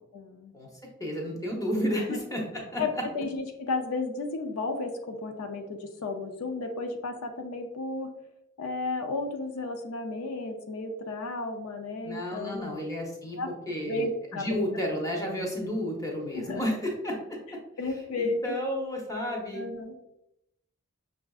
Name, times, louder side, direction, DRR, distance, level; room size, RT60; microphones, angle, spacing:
voice 1, 0.1-0.5 2.0-2.2 2.8-2.9 3.1-8.1 8.6-13.0 13.4-13.5 13.8-14.6 16.3-16.8 17.8-18.6 19.5-19.9, left 3 dB, 75° left, 5 dB, 0.4 m, -33 dB
voice 2, 1.0-2.4 2.7-2.8 12.0-13.4 13.7-14.1 14.4-17.6 18.2-19.6, equal, 15° left, -1 dB, 0.8 m, -31 dB
5.8 x 2.5 x 2.3 m, 0.84 s
head